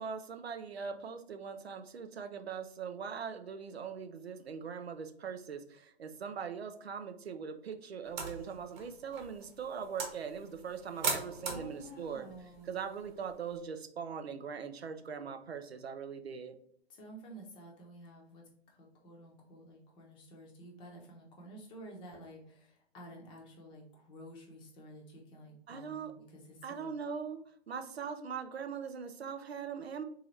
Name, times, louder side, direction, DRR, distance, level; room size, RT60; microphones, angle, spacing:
voice 1, 0.0-12.3 12.6-16.6 25.7-26.1 26.6-30.0, right 6 dB, 75° right, 9 dB, 0.6 m, -41 dB
sound 1, 8.0-13.6, right 4 dB, 45° right, 1.1 m, -41 dB
voice 2, 11.4-12.7 16.9-26.9, right 1 dB, 15° left, 0 dB, 0.7 m, -51 dB
3.9 x 2.8 x 3.1 m, 0.66 s
figure-of-eight pair, 125°, 31 cm